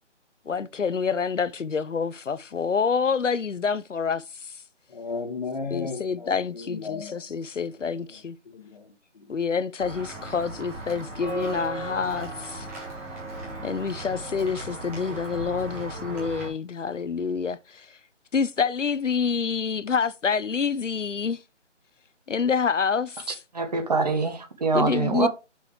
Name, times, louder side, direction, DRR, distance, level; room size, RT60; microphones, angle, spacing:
voice 1, 0.5-4.2 5.7-8.4 9.3-12.7 13.6-17.6 18.3-21.4 22.3-23.2 24.7-25.3, left 5 dB, 90° left, 0.8 m, -27 dB
voice 2, 4.9-7.2 7.8-9.6, left 4 dB, 35° left, 1.8 m, -36 dB
Walk footsteps / Bell, 9.8-16.5, right 2 dB, 10° right, 1.5 m, -36 dB
voice 3, 23.3-25.3, right 4 dB, 35° right, 1.2 m, -25 dB
6.3 x 5.4 x 4.6 m
figure-of-eight pair, 160°, 36 cm